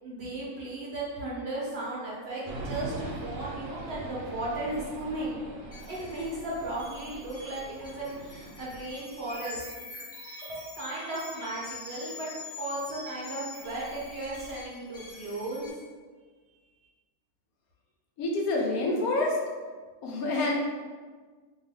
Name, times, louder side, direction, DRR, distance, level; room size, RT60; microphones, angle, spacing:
voice 1, 0.0-5.4 5.9-9.6 10.5-12.3 12.6-15.7, right 2 dB, 55° right, -6 dB, 0.8 m, -35 dB
sound 1, 2.5-9.4, right 2 dB, 75° right, 1.0 m, -42 dB
sound 2, 5.7-15.7, left 3 dB, 45° left, 0.8 m, -45 dB
voice 2, 18.2-19.4 20.0-20.5, left 2 dB, 85° left, -1 dB, 1.1 m, -27 dB
2.6 x 2.6 x 3.4 m, 1.4 s
omnidirectional pair, 1.5 m